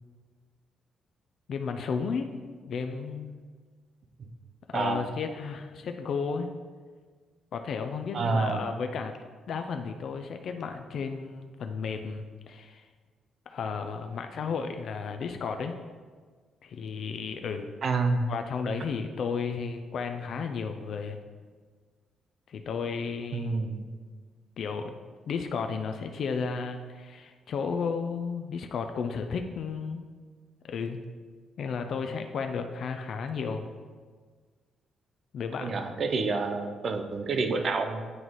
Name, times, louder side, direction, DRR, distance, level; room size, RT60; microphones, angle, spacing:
voice 1, 1.5-3.4 4.7-6.5 7.5-9.1 9.5-12.9 13.5-15.8 16.6-17.7 18.3-21.2 22.5-23.6 24.6-24.9 25.3-30.0 30.6-31.0 31.6-33.7 35.3-35.8, left 5 dB, 50° left, 6 dB, 0.3 m, -33 dB
voice 2, 4.7-5.1 8.1-8.6 17.8-18.3 23.3-23.9 35.6-38.0, right 3 dB, 40° right, 6 dB, 0.5 m, -28 dB
9.1 x 3.1 x 4.0 m, 1.5 s
cardioid pair, 165°, 0 cm